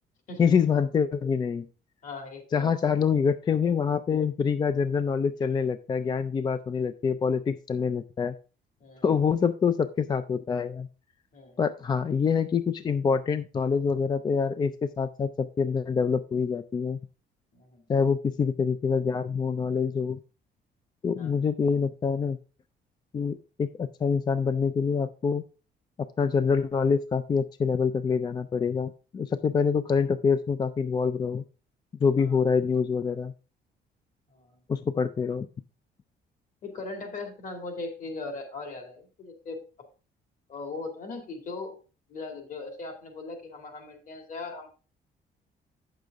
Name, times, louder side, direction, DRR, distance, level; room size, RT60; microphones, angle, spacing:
voice 1, 0.4-1.7 2.5-8.3 9.0-10.9 11.6-17.0 17.9-20.2 21.0-22.4 23.1-25.4 26.2-31.4 32.0-33.3 34.7-35.5, left 6 dB, 25° left, 12 dB, 0.3 m, -26 dB
voice 2, 2.0-2.7 8.8-9.0 11.3-11.6 17.5-17.9 21.2-21.4 32.2-32.4 34.3-34.6 36.6-39.6 40.5-41.8 42.1-44.7, left 3 dB, 45° left, 4 dB, 2.3 m, -39 dB
9.1 x 6.7 x 3.6 m, 0.34 s
cardioid pair, 165°, 18 cm